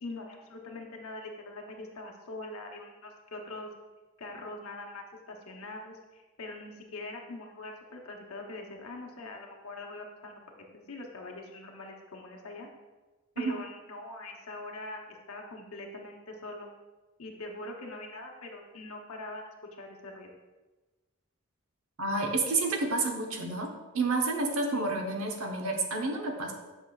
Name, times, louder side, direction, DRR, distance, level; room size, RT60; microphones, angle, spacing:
voice 1, 0.0-3.7 4.2-10.4 10.9-12.7 13.4-16.7 17.2-19.5 19.8-20.3 24.7-24.9, left 2 dB, 85° left, 1 dB, 0.9 m, -43 dB
voice 2, 22.0-23.7 23.9-26.5, right 3 dB, 80° right, 3 dB, 0.9 m, -29 dB
8.0 x 5.5 x 2.4 m, 1.2 s
head